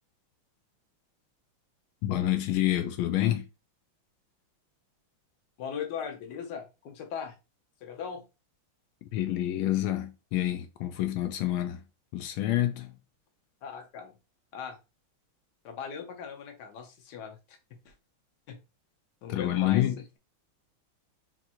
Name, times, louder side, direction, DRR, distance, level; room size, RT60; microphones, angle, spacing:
voice 1, 2.0-3.5 9.0-11.8 12.1-13.0 19.3-20.0, left 13 dB, 85° left, 1.4 m, -28 dB
voice 2, 5.6-7.3 7.8-8.2 13.6-14.1 14.5-14.8 15.6-17.4 17.8-17.9 18.5-18.6 19.2-19.8, left 7 dB, 60° left, 1.4 m, -38 dB
3.6 x 3.0 x 4.2 m
omnidirectional pair, 2.2 m